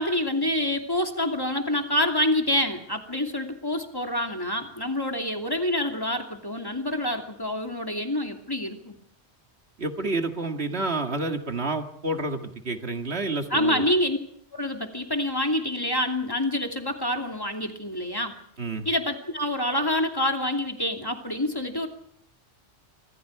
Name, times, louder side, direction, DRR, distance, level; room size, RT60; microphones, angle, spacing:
voice 1, 0.0-9.0 13.5-14.2 14.5-18.4 18.8-21.9, left 1 dB, 20° left, 3 dB, 2.8 m, -27 dB
voice 2, 9.8-13.9 18.6-18.9, right 2 dB, 65° right, 5 dB, 2.2 m, -29 dB
26.5 x 25.5 x 4.8 m, 0.66 s
omnidirectional pair, 1.1 m